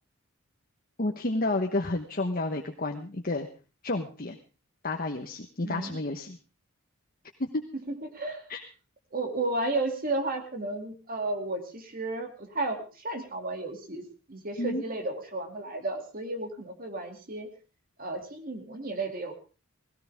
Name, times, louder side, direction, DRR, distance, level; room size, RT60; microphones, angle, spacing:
voice 1, 1.0-3.5 3.8-4.4 4.8-6.4 7.4-7.6 8.5-8.6 14.6-14.8, left 2 dB, 45° left, 4 dB, 1.1 m, -30 dB
voice 2, 5.6-6.0 7.9-8.4 9.1-17.5 18.0-19.3, right 2 dB, 45° right, 4 dB, 2.6 m, -33 dB
18.0 x 17.0 x 3.5 m, 0.35 s
head